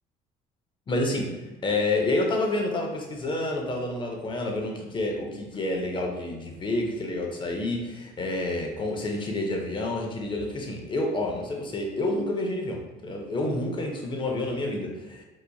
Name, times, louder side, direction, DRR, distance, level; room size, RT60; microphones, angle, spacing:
voice 1, 0.9-1.3 1.6-15.2, left 2 dB, 30° left, 1 dB, 0.5 m, -29 dB
2.8 x 2.4 x 2.2 m, 1.2 s
cardioid pair, 110°, 17 cm